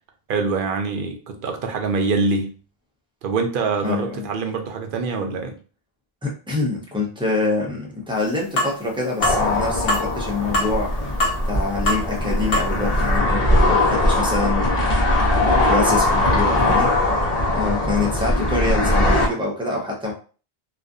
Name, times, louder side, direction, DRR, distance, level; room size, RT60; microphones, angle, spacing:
voice 1, 0.3-2.6 3.2-5.5, right 4 dB, 65° right, 5 dB, 0.7 m, -24 dB
voice 2, 3.8-4.3 6.2-10.9 11.4-14.9 15.4-16.9 17.5-20.1, left 3 dB, 5° right, -2 dB, 0.5 m, -25 dB
sound 1, 8.6-8.8 9.2-9.4 9.9-10.1 10.5-10.8 11.2-11.5 11.9-12.0 12.5-12.7 13.2-13.3, left 1 dB, 65° left, 1.0 m, -22 dB
sound 2, 9.2-19.3, left 1 dB, 35° left, 0.7 m, -20 dB
2.4 x 2.3 x 2.5 m, 0.38 s
omnidirectional pair, 1.0 m